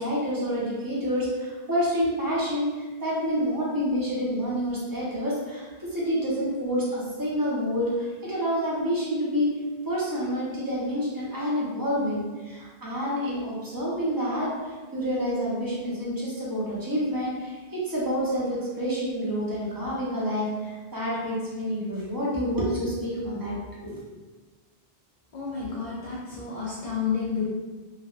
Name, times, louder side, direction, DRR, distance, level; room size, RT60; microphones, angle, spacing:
voice 1, 0.0-9.5 9.8-24.0, equal, 25° right, -7 dB, 0.6 m, -28 dB
voice 2, 25.3-27.5, left 6 dB, 60° left, -7 dB, 0.4 m, -30 dB
3.4 x 2.2 x 2.4 m, 1.3 s
omnidirectional pair, 1.1 m